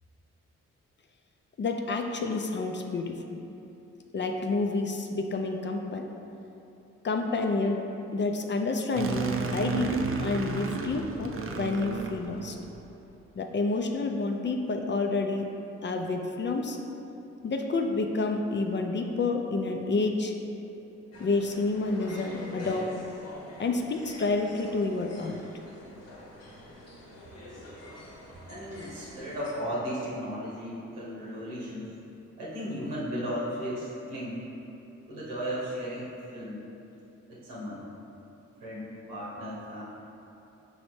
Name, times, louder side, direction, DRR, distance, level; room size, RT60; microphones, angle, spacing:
voice 1, 1.6-3.4 4.1-6.1 7.0-7.8 8.1-12.6 13.4-15.5 15.8-16.8 17.4-20.3 21.2-22.9 23.6-25.4, left 3 dB, 35° left, 3 dB, 0.4 m, -29 dB
sound 1, 9.0-12.9, right 4 dB, 40° right, 0.5 m, -32 dB
sound 2, 21.1-29.5, left 1 dB, 50° left, 0.9 m, -46 dB
voice 2, 28.5-32.0 32.4-34.5 35.1-36.6 37.3-37.8 38.6-39.8, equal, 85° right, -7 dB, 1.1 m, -35 dB
5.1 x 3.1 x 3.1 m, 2.9 s
hypercardioid pair, 40°, 32 cm